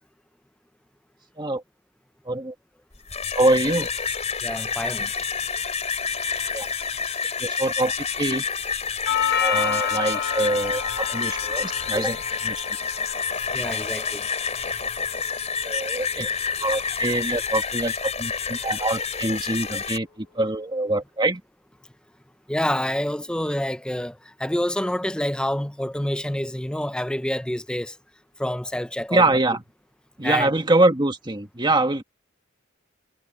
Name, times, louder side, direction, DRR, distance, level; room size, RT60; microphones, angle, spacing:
sound 1, 2.9-20.0, left 6 dB, 35° left, 3.9 m, -28 dB
voice 1, 3.3-3.9 6.5-6.7 7.4-8.4 9.4-12.2 12.4-12.5 15.6-16.3 16.6-21.4 29.1-29.6 30.2-32.0, right 2 dB, 25° right, 1.7 m, -24 dB
voice 2, 4.4-5.1 11.9-12.1 13.5-14.2 22.5-27.9 28.4-29.2 30.2-30.5, left 1 dB, 5° left, 0.6 m, -27 dB
Doorbell, 9.1-17.1, left 8 dB, 55° left, 1.2 m, -31 dB
head